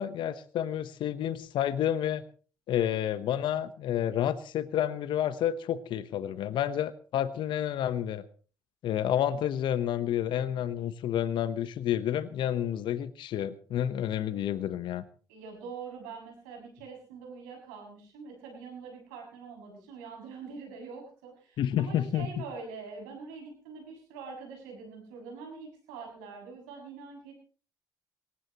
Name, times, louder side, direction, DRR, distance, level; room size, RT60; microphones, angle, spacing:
voice 1, 0.0-2.2 2.7-8.2 8.8-15.0 21.6-22.3, left 10 dB, 70° left, 13 dB, 1.1 m, -30 dB
voice 2, 15.3-27.3, right 5 dB, 90° right, 1 dB, 6.8 m, -44 dB
22.5 x 18.5 x 3.0 m, 0.38 s
hypercardioid pair, 55°, 9 cm